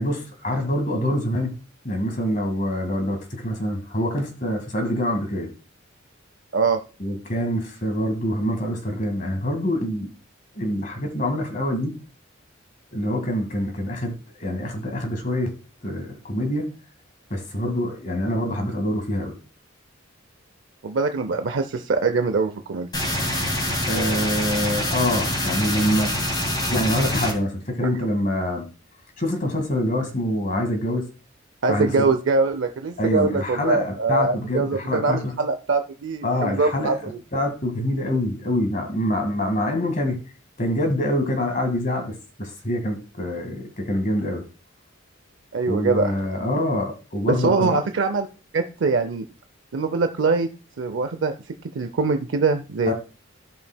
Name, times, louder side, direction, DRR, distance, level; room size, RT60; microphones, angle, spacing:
voice 1, 0.0-1.6 1.8-5.5 7.0-10.1 10.5-12.0 12.9-15.6 15.8-16.8 17.3-19.4 23.8-26.2 26.7-28.6 29.2-31.1 31.7-31.9 33.0-35.3 36.2-40.2 40.6-44.5 45.7-47.8 52.9-53.0, left 1 dB, 40° left, 5 dB, 1.9 m, -25 dB
voice 2, 20.8-22.9 27.8-27.9 31.6-37.2 45.5-46.1 47.3-48.3 48.5-49.3 49.7-50.5 50.8-51.3 51.7-52.9, right 4 dB, 65° right, 8 dB, 0.5 m, -23 dB
sound 1, 22.9-27.3, left 1 dB, 20° left, 2.1 m, -25 dB
14.5 x 5.4 x 2.2 m, 0.33 s
head